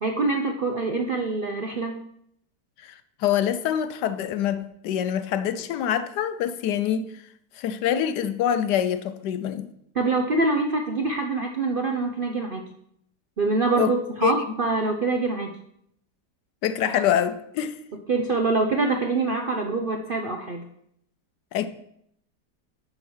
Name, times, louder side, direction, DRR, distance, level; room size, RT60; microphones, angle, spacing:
voice 1, 0.0-2.0 9.9-12.7 13.4-15.6 18.1-20.6, right 3 dB, 55° right, 0.6 m, -25 dB
voice 2, 2.8-7.1 7.6-9.7 13.8-13.9 14.2-14.3 16.6-17.7 21.5-21.7, left 10 dB, 80° left, 1.2 m, -25 dB
11.0 x 3.9 x 6.2 m
omnidirectional pair, 1.8 m